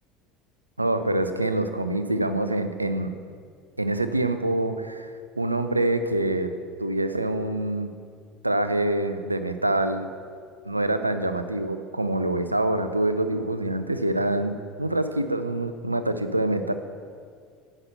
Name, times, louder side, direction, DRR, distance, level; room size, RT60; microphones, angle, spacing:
voice 1, 0.8-3.1 3.8-5.1 5.4-6.5 6.8-7.9 8.4-10.1 10.6-14.5 14.8-16.7, right 1 dB, 85° right, 10 dB, 0.5 m, -25 dB
9.7 x 6.0 x 6.6 m, 2.1 s
figure-of-eight pair, 70°, 0 cm